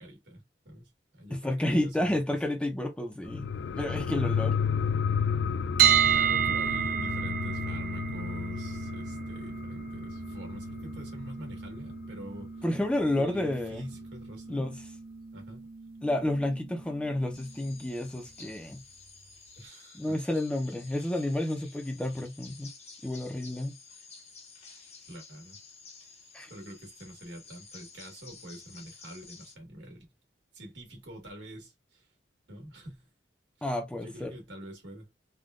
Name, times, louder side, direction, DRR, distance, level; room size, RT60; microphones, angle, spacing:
voice 1, 0.0-2.4 6.1-12.5 13.1-14.6 15.3-15.7 19.6-20.2 25.0-25.6 26.5-30.1 30.5-32.0 32.5-33.1 33.6-33.7 34.0-35.1, equal, 80° right, 1.6 m, -46 dB
voice 2, 1.3-4.6 12.6-13.9 14.5-14.7 16.0-18.8 19.9-22.7 23.0-23.7 26.3-26.5 33.6-34.3, left 1 dB, 5° left, 0.5 m, -30 dB
sound 1, 3.2-12.4 12.7-12.8, left 6 dB, 70° left, 0.3 m, -32 dB
sound 2, 5.8-17.7, right 9 dB, 50° right, 0.5 m, -32 dB
sound 3, 17.3-29.6, left 4 dB, 35° left, 0.8 m, -52 dB
3.5 x 2.2 x 2.4 m
head